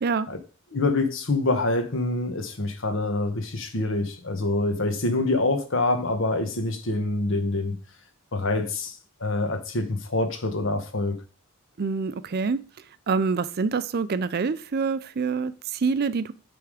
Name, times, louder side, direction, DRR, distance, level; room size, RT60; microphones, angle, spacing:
voice 1, 0.7-7.8 8.3-11.2, left 2 dB, 60° left, 1.2 m, -26 dB
voice 2, 11.8-12.6 13.1-16.3, right 5 dB, 45° right, 0.4 m, -26 dB
9.1 x 3.5 x 4.9 m
head